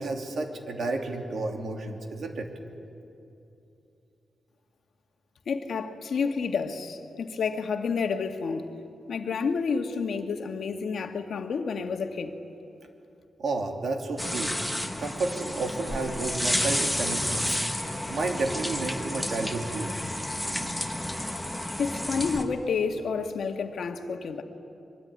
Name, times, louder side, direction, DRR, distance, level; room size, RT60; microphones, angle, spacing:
voice 1, 0.0-2.5 13.4-14.5 15.0-17.6 18.1-19.9, right 3 dB, 60° right, 3 dB, 2.8 m, -31 dB
voice 2, 5.5-8.7 9.1-12.3 21.8-24.4, left 5 dB, 65° left, 5 dB, 1.7 m, -29 dB
sound 1, 14.2-22.4, left 1 dB, 5° left, 1.4 m, -31 dB
24.0 x 23.0 x 9.8 m, 2.8 s
wide cardioid pair, 160°, 0 cm